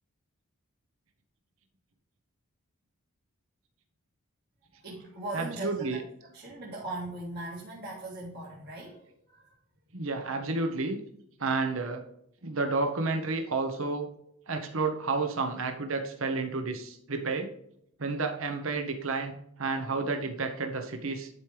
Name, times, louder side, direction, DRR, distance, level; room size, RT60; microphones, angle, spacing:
voice 1, 4.8-6.0 6.3-9.6, right 2 dB, 50° right, -4 dB, 1.8 m, -39 dB
voice 2, 5.3-6.0 9.9-11.0 11.4-12.0 12.4-14.1 14.5-17.5 18.0-21.3, right 3 dB, 65° right, 5 dB, 1.0 m, -31 dB
11.0 x 4.6 x 3.3 m, 0.74 s
head